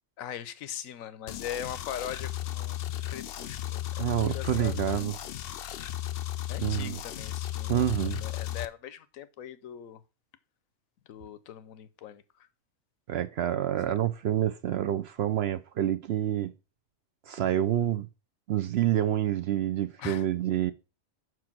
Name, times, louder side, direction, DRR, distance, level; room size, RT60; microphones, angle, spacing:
voice 1, 0.2-2.8 3.1-5.0 6.5-10.0 11.1-12.2 13.8-13.9 20.0-20.3, left 10 dB, 90° left, 1.1 m, -41 dB
sound 1, 1.3-8.6, left 13 dB, 60° left, 0.6 m, -35 dB
voice 2, 4.0-5.2 6.6-7.0 7.7-8.2 13.1-16.5 17.3-18.1 18.5-20.7, right 11 dB, 65° right, 0.7 m, -27 dB
6.1 x 4.7 x 5.9 m
omnidirectional pair, 1.4 m